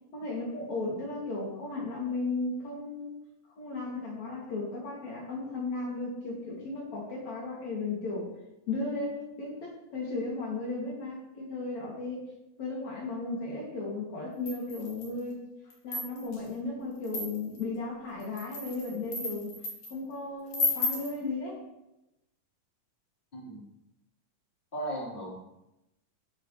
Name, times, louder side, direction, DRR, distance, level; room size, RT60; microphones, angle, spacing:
voice 1, 0.1-3.2 3.6-8.3 8.7-12.3 12.6-15.4 15.8-19.5 19.9-21.6, left 3 dB, 60° left, -4 dB, 3.9 m, -35 dB
sound 1, 14.5-15.2 15.7-16.4 17.0-17.6 18.2-19.9 20.5-21.1, left 2 dB, 75° left, 4.0 m, -33 dB
voice 2, 23.3-23.6 24.7-25.5, right 1 dB, 15° left, -6 dB, 4.2 m, -37 dB
12.5 x 12.0 x 3.3 m, 0.89 s
omnidirectional pair, 3.6 m